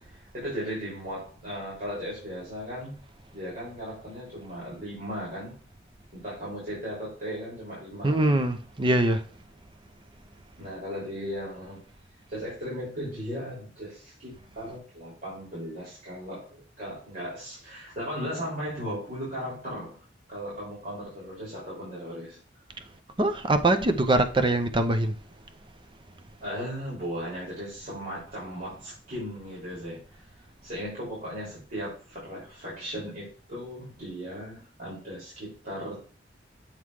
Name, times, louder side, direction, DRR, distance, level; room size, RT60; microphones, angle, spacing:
voice 1, 0.0-2.9 3.3-5.5 6.1-8.4 10.6-11.9 12.3-20.0 20.3-22.4 26.4-30.3 30.6-36.1, equal, 50° right, 3.4 m, -37 dB
voice 2, 8.0-9.2 23.2-25.1, right 2 dB, 25° right, 0.6 m, -23 dB
7.2 x 3.9 x 4.7 m
head